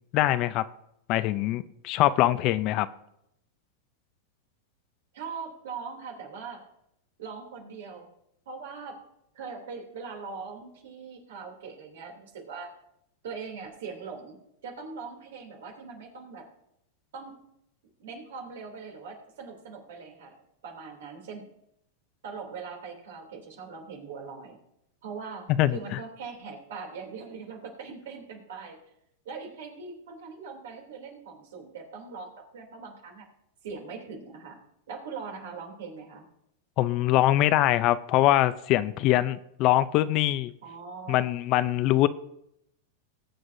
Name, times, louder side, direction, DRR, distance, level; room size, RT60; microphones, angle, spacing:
voice 1, 0.1-0.7 1.1-2.9 25.6-25.8 36.8-40.5 41.1-42.1, left 14 dB, 45° left, 15 dB, 0.5 m, -23 dB
voice 2, 5.1-6.7 7.2-8.1 8.5-9.0 9.3-12.7 13.2-16.5 17.1-17.4 18.0-21.4 22.2-24.6 25.0-28.8 29.2-33.3 33.6-34.6 34.9-36.2 40.6-41.3, right 5 dB, 75° right, 2 dB, 2.9 m, -41 dB
20.0 x 7.7 x 2.7 m, 0.78 s
hypercardioid pair, 120°, 0 cm